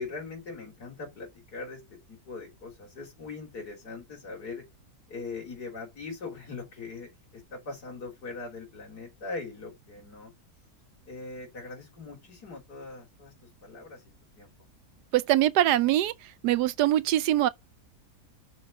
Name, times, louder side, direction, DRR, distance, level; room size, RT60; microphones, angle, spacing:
voice 1, 0.0-4.7 5.1-10.3 11.1-13.3 13.6-14.0 14.4-14.5, left 3 dB, 70° left, 3.6 m, -41 dB
voice 2, 15.1-16.1 16.4-17.5, right 13 dB, 80° right, 1.2 m, -23 dB
6.3 x 4.1 x 5.9 m
omnidirectional pair, 1.7 m